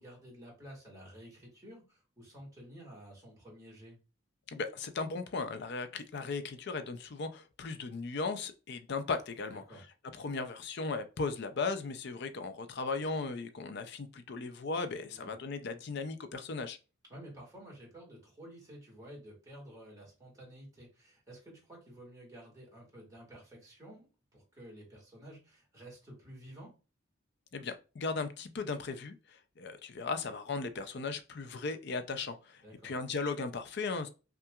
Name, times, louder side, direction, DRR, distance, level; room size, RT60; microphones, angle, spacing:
voice 1, 0.0-4.0 9.5-9.8 15.1-15.3 17.1-24.1 24.3-26.7 32.6-32.9, right 1 dB, 15° right, 1.7 m, -51 dB
voice 2, 4.5-9.6 10.1-16.8 27.5-34.1, left 4 dB, 55° left, 0.5 m, -37 dB
5.6 x 2.4 x 2.4 m
head